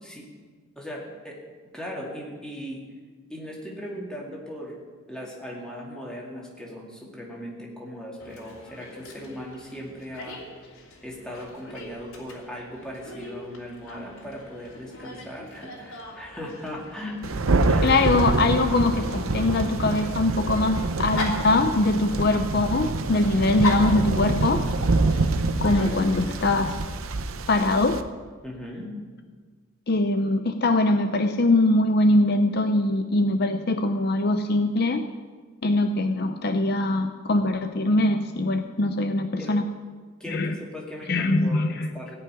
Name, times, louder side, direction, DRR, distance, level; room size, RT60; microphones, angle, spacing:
voice 1, 0.8-1.4 1.7-2.8 3.3-4.8 5.1-10.4 11.0-17.9 28.4-28.9 39.4-39.5 40.2-42.2, equal, 5° left, -3 dB, 2.4 m, -38 dB
Dog, 8.2-26.5, left 2 dB, 85° left, 2.9 m, -39 dB
Thunder, 17.2-28.0, right 3 dB, 80° right, 0.8 m, -26 dB
voice 2, 17.8-24.6 25.6-26.8 27.5-28.0 29.9-35.0 35.6-39.6 40.3-40.5 41.1-41.9, left 2 dB, 50° left, 7 dB, 0.5 m, -22 dB
17.0 x 5.7 x 9.7 m, 1.5 s
head